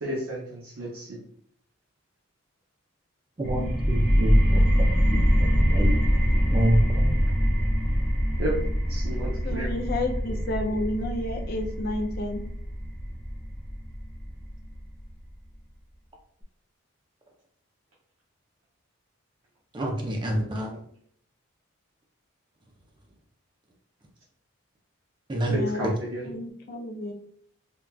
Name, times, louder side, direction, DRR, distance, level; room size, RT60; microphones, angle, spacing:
voice 1, 0.0-1.2 8.4-8.6 8.9-9.7 25.5-26.3, right 1 dB, 85° right, -5 dB, 0.7 m, -32 dB
sound 1, 3.4-14.8, equal, ahead, 0.9 m, -24 dB
voice 2, 3.4-5.9 6.5-7.2 19.7-20.8 25.3-25.6 25.8-25.9, right 1 dB, 20° right, 1 dB, 0.4 m, -28 dB
voice 3, 9.4-12.4 25.5-25.9 26.3-27.1, left 1 dB, 45° left, 4 dB, 0.4 m, -31 dB
3.8 x 2.2 x 2.3 m, 0.64 s
head